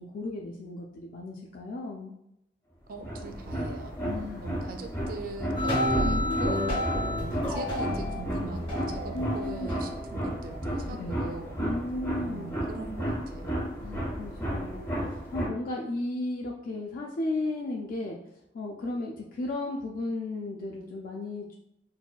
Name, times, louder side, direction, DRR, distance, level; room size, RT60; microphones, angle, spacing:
voice 1, 0.0-2.1 4.0-4.5 9.1-9.7 10.9-11.1 11.6-12.5 13.8-18.2 18.5-21.6, left 2 dB, 50° left, -1 dB, 0.3 m, -35 dB
sound 1, 2.9-15.5, equal, 15° left, 0.6 m, -34 dB
voice 2, 2.9-4.0 4.4-6.6 7.0-11.6 12.1-13.5, right 3 dB, 50° right, 4 dB, 0.4 m, -40 dB
sound 2, 5.6-10.6, left 1 dB, 30° left, 1.1 m, -30 dB
4.0 x 2.2 x 2.3 m, 0.82 s
head